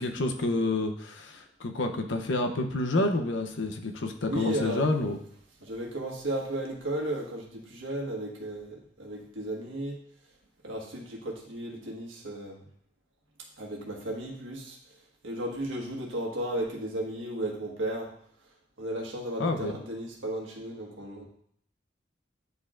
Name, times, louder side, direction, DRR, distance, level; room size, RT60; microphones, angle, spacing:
voice 1, 0.0-5.2 19.4-19.8, left 2 dB, 65° left, 5 dB, 0.7 m, -29 dB
voice 2, 4.2-4.8 5.6-10.0 10.6-12.6 13.6-14.8 15.2-18.1 18.8-21.2, right 1 dB, 80° right, -1 dB, 1.4 m, -34 dB
9.3 x 4.5 x 2.4 m, 0.66 s
head